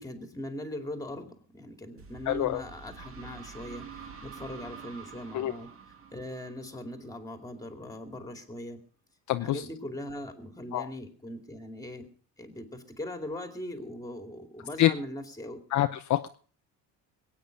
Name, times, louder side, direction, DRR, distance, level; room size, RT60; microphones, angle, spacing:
voice 1, 0.0-5.7 6.1-8.8 9.4-12.1 12.4-15.6, left 1 dB, 10° left, 6 dB, 2.5 m, -40 dB
sound 1, 2.0-7.6, right 6 dB, 40° right, 2.1 m, -47 dB
voice 2, 2.3-2.6 5.3-5.5 9.3-9.6 10.7-10.9 14.8-14.9 15.7-16.3, left 13 dB, 55° left, 8 dB, 0.7 m, -26 dB
21.5 x 9.1 x 5.2 m, 0.43 s
cardioid pair, 120°, 35 cm